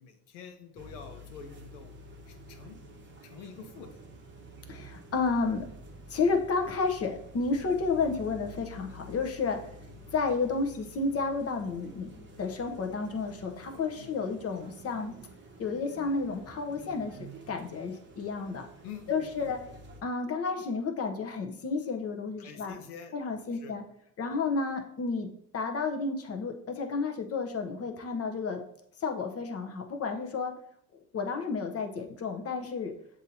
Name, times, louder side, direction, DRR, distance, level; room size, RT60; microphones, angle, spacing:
voice 1, 0.0-1.9 2.3-2.8 3.2-4.0 14.0-14.1 18.8-19.5 22.4-23.1 23.5-23.8, left 6 dB, 85° left, 7 dB, 0.7 m, -47 dB
sound 1, 0.8-20.0, right 1 dB, 25° right, 0.9 m, -49 dB
voice 2, 4.7-5.7 6.1-9.6 10.1-12.1 12.4-15.1 15.6-17.2 17.5-18.7 19.1-19.6 20.0-22.8 23.1-23.8 24.2-28.6 29.0-30.5 31.1-32.9, left 4 dB, 35° left, 5 dB, 0.8 m, -31 dB
7.1 x 2.8 x 2.7 m, 0.70 s
hypercardioid pair, 70°, 43 cm